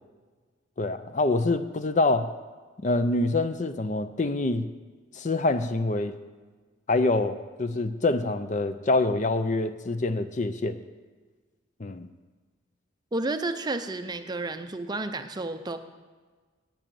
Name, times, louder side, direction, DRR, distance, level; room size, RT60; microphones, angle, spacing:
voice 1, 0.8-2.3 2.8-4.7 5.1-6.1 6.9-10.8 11.8-12.1, left 2 dB, 35° left, 10 dB, 0.5 m, -26 dB
voice 2, 13.1-15.8, right 2 dB, 20° right, 8 dB, 0.5 m, -31 dB
8.7 x 7.9 x 9.0 m, 1.4 s
head